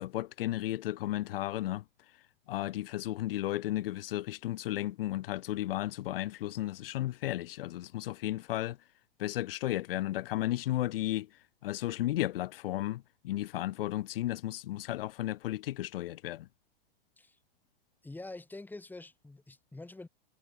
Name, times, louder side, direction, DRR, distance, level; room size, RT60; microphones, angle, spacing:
voice 1, 0.0-1.8 2.5-8.8 9.2-11.3 11.6-16.5, left 15 dB, 65° left, 1.5 m, -34 dB
voice 2, 18.0-20.1, left 2 dB, 5° left, 7.1 m, -46 dB
hypercardioid pair, 135°, 30 cm